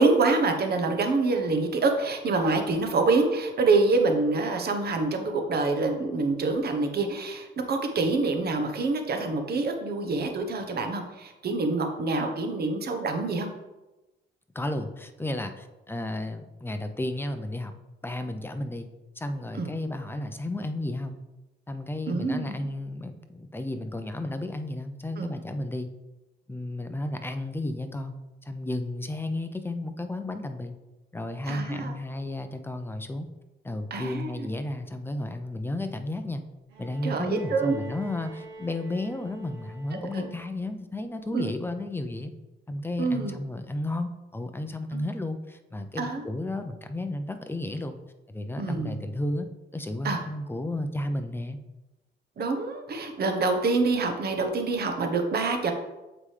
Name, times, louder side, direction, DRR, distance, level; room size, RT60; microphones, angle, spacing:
voice 1, 0.0-13.5 19.6-19.7 22.1-22.6 25.2-25.3 31.5-32.0 33.9-34.5 37.0-37.8 39.9-40.2 41.3-41.5 43.0-43.3 44.9-45.0 46.0-46.2 48.6-48.9 50.0-50.2 52.4-55.7, right 3 dB, 55° right, 5 dB, 1.1 m, -26 dB
voice 2, 14.5-17.7 18.0-18.9 19.2-21.2 21.7-25.9 26.5-28.1 28.4-30.8 31.1-33.3 33.6-36.4 36.8-42.3 42.7-47.9 48.3-49.5 49.7-51.6, left 1 dB, 10° left, 7 dB, 0.6 m, -33 dB
Bowed string instrument, 36.7-40.7 42.0-42.1, right 2 dB, 90° right, 1.4 m, -45 dB
7.4 x 4.9 x 3.3 m, 1.0 s
cardioid pair, 90°, 20 cm